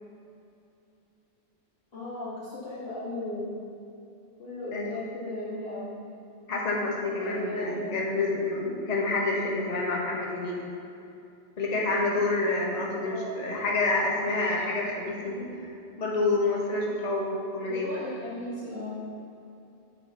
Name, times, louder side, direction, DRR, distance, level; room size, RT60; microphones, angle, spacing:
voice 1, 1.9-3.5 4.4-5.9 7.2-8.0 13.0-13.3 17.7-18.9, left 1 dB, 60° left, -11 dB, 1.6 m, -36 dB
voice 2, 6.5-10.6 11.6-15.7 16.0-17.9, left 2 dB, 40° left, -3 dB, 1.1 m, -28 dB
6.9 x 4.7 x 5.8 m, 2.6 s
omnidirectional pair, 1.2 m